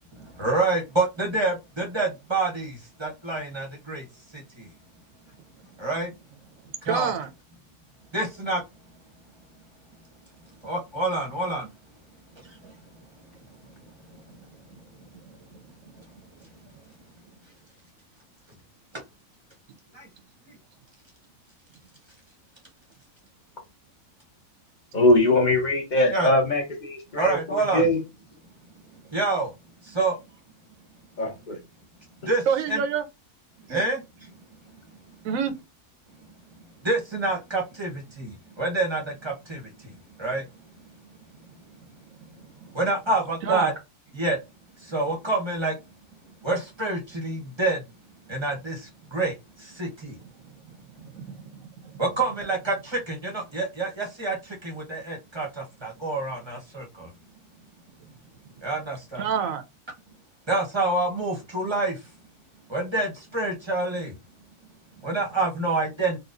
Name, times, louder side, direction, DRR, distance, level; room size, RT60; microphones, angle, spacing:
voice 1, 0.4-2.7 3.0-4.0 5.8-6.1 6.9-7.1 8.1-8.6 10.6-11.7 26.1-26.3 27.2-27.9 29.1-29.5 29.9-30.2 32.3-32.4 32.7-32.8 33.7-34.0 36.8-39.6 40.2-40.4 42.7-43.7 44.1-44.4 44.9-45.7 46.4-47.8 48.3-48.8 49.1-49.3 49.8-50.1 52.0-54.4 54.6-55.5 55.8-57.1 58.6-59.2 60.5-61.9 62.7-64.1 65.0-66.2, right 2 dB, 20° right, 0.9 m, -27 dB
voice 2, 6.8-7.3 14.3-14.4 15.0-15.6 16.1-16.2 32.5-33.0 33.7-33.9 35.2-35.6 42.4-42.8 43.4-43.7 50.9-52.0 59.2-59.6, right 7 dB, 70° right, 1.0 m, -29 dB
voice 3, 24.9-28.0 31.2-31.6, left 1 dB, 35° left, 1.1 m, -22 dB
4.1 x 2.3 x 2.5 m
omnidirectional pair, 1.6 m